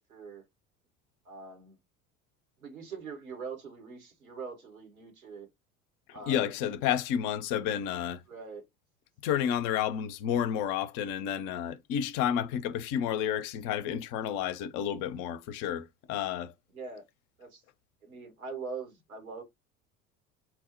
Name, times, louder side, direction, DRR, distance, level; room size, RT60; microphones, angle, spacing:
voice 1, 0.1-0.4 1.2-1.8 2.6-5.5 6.1-6.8 8.3-8.7 16.7-17.0 17.4-17.6 18.0-19.4, right 4 dB, 85° right, 1.2 m, -43 dB
voice 2, 6.3-8.2 9.2-16.5, left 9 dB, 50° left, 0.6 m, -31 dB
4.4 x 2.1 x 3.9 m
figure-of-eight pair, 70°, 42 cm